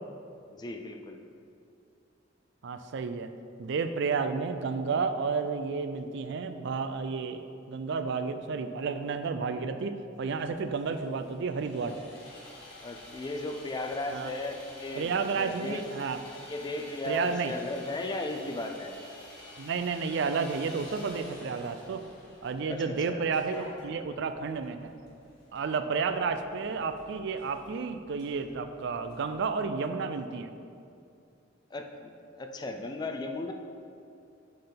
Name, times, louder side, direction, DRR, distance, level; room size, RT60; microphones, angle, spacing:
voice 1, 0.5-1.2 12.8-15.9 16.4-19.0 22.7-23.2 26.1-26.5 31.7-33.5, left 2 dB, 20° left, 3 dB, 0.4 m, -36 dB
voice 2, 2.6-3.3 3.6-12.0 14.1-14.3 15.0-16.2 17.1-17.5 19.6-22.0 22.4-24.9 25.5-30.5, right 5 dB, 65° right, 9 dB, 0.4 m, -31 dB
Sawing, 10.1-29.5, left 1 dB, 60° left, 1.5 m, -50 dB
7.8 x 3.9 x 5.1 m, 2.5 s
head